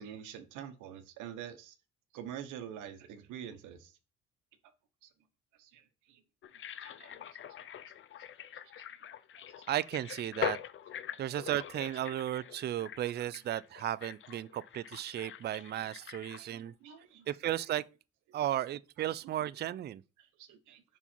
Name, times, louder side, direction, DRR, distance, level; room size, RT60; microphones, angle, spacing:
voice 1, 0.0-1.7 2.1-3.9 5.0-5.1 5.6-5.8 6.1-6.2 6.8-7.2 7.7-7.8 8.8-8.9 11.3-11.5 12.8-12.9 16.3-16.5 16.8-17.3 20.2-20.8, right 9 dB, 75° right, 1.0 m, -46 dB
sound 1, 6.4-17.0 17.3-17.4, left 10 dB, 40° left, 0.5 m, -43 dB
voice 2, 9.7-10.6 11.2-16.7 17.3-17.9 18.3-20.0, right 12 dB, 35° right, 0.4 m, -35 dB
5.4 x 4.5 x 4.4 m
supercardioid pair, 85°, 30 cm